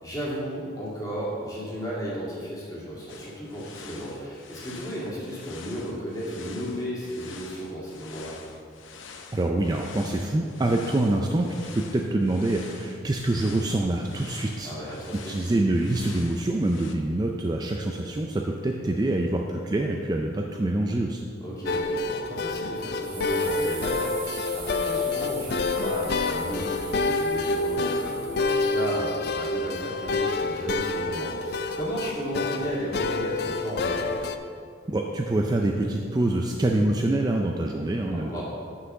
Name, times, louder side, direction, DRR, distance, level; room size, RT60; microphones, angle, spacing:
voice 1, 0.0-8.4 14.6-15.4 21.4-34.2 38.1-38.4, equal, 20° left, -7 dB, 2.1 m, -34 dB
sound 1, 3.1-16.9, left 5 dB, 90° left, 0.7 m, -46 dB
voice 2, 9.3-11.5 11.7-14.7 15.3-21.2 34.9-38.4, right 1 dB, 20° right, 1 dB, 0.3 m, -25 dB
sound 2, 21.7-34.4, left 3 dB, 55° left, 0.4 m, -28 dB
sound 3, 23.0-29.2, right 7 dB, 80° right, 1.2 m, -42 dB
6.0 x 5.7 x 6.8 m, 2.3 s
head